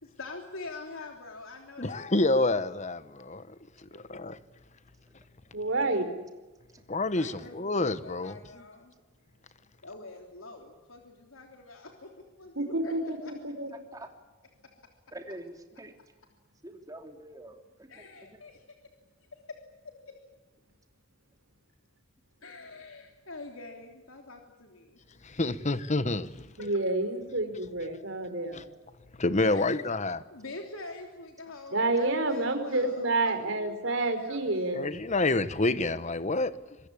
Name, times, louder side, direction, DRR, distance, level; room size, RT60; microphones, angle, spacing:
voice 1, 0.0-2.1 3.9-4.2 7.1-7.7 8.0-8.9 9.8-13.3 17.9-18.6 19.3-19.6 19.8-20.1 22.4-25.0 26.6-26.8 29.5-29.9 30.3-34.7, left 3 dB, 85° left, 3.3 m, -45 dB
voice 2, 1.8-4.4 6.9-8.6 25.2-26.5 28.5-28.6 29.1-30.2 34.7-36.6, left 2 dB, 35° left, 1.2 m, -28 dB
voice 3, 5.5-6.1 12.6-13.7 26.6-28.7 31.7-34.8, right 2 dB, 65° right, 4.8 m, -29 dB
voice 4, 15.1-15.9 16.6-18.1, right 1 dB, 15° right, 3.1 m, -45 dB
26.0 x 22.5 x 8.6 m
head